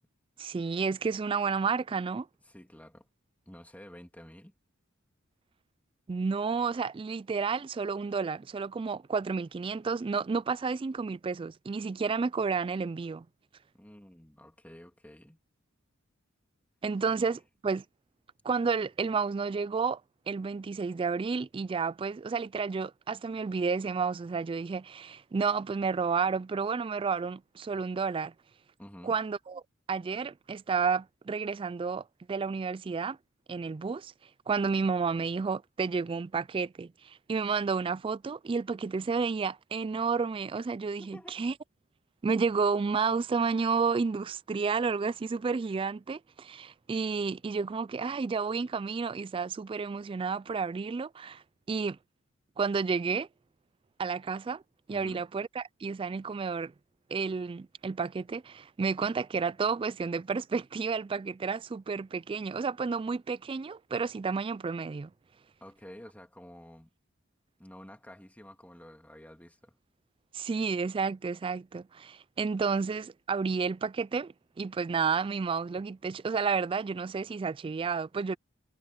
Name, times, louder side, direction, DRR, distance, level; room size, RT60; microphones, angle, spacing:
voice 1, 0.4-2.3 6.1-13.2 16.8-17.8 18.4-20.0 20.3-28.3 29.0-29.6 29.9-33.2 33.5-34.1 34.5-41.5 42.2-51.4 51.7-52.0 52.6-53.3 54.0-54.6 54.9-56.7 57.1-65.1 70.3-78.4, right 5 dB, 25° right, 0.3 m, -31 dB
voice 2, 2.4-3.1 3.5-4.5 13.7-15.4 17.1-17.2 28.8-29.2 41.0-41.4 54.9-55.2 65.6-66.9 67.6-69.8, equal, 10° left, 2.5 m, -50 dB
head